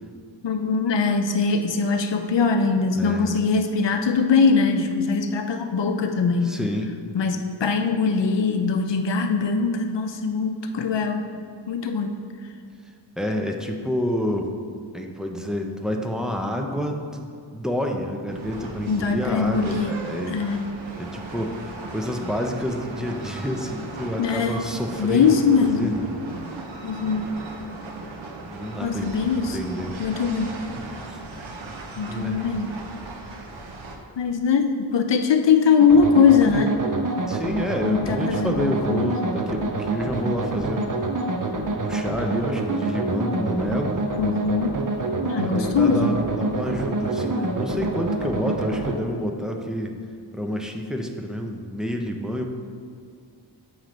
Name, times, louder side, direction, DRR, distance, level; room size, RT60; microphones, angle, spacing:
voice 1, 0.4-6.6 7.1-11.2 11.7-12.2 18.9-19.9 20.3-20.7 24.2-24.7 25.0-26.0 26.8-27.3 28.8-29.7 30.0-30.5 32.0-32.7 34.2-36.8 37.9-39.1 44.2-44.7 45.2-46.2, left 5 dB, 65° left, 6 dB, 0.6 m, -21 dB
voice 2, 2.9-3.4 6.4-6.9 13.2-14.5 14.9-20.5 21.0-26.1 28.5-29.1 29.5-29.9 31.1-31.2 32.1-32.4 37.3-41.0 41.7-43.9 45.4-49.9 50.3-52.5, equal, ahead, 2 dB, 0.5 m, -28 dB
sound 1, 18.3-34.0, right 2 dB, 75° right, 0.8 m, -37 dB
sound 2, 35.8-49.0, right 2 dB, 45° right, 0.6 m, -27 dB
7.4 x 3.2 x 5.0 m, 2.2 s
wide cardioid pair, 75°, 47 cm